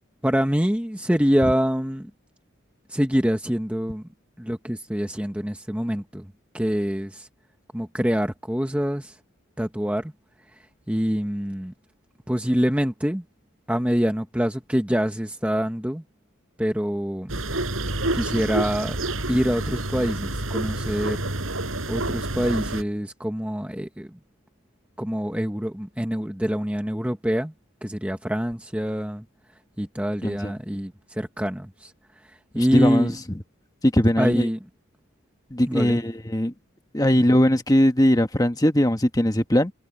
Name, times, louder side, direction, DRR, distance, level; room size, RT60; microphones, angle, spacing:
voice 1, 0.2-2.1 2.9-4.0 4.4-6.3 6.5-7.3 7.7-9.2 9.6-10.1 10.5-10.6 10.9-11.7 12.3-13.2 13.7-16.0 16.6-17.3 18.1-19.0 19.3-21.2 21.9-24.2 25.0-27.5 27.8-29.2 29.8-33.1 34.2-34.6 35.7-36.0 37.3-37.4, equal, 5° right, 0.9 m, -25 dB
sound 1, 17.3-22.8, right 2 dB, 75° right, 4.8 m, -28 dB
voice 2, 30.2-30.5 32.5-33.1 33.8-34.5 35.5-36.5 36.9-39.7, equal, 15° left, 1.4 m, -20 dB
head